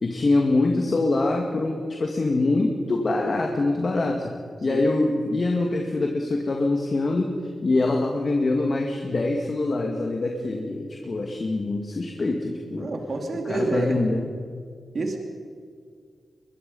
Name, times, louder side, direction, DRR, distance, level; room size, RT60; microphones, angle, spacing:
voice 1, 0.0-4.3 4.6-12.9 13.5-14.3, left 2 dB, 45° left, 1 dB, 2.2 m, -24 dB
voice 2, 12.8-14.0 14.9-15.2, right 2 dB, 55° right, 3 dB, 2.6 m, -27 dB
22.5 x 22.0 x 5.5 m, 2.2 s
cardioid pair, 85°, 0 cm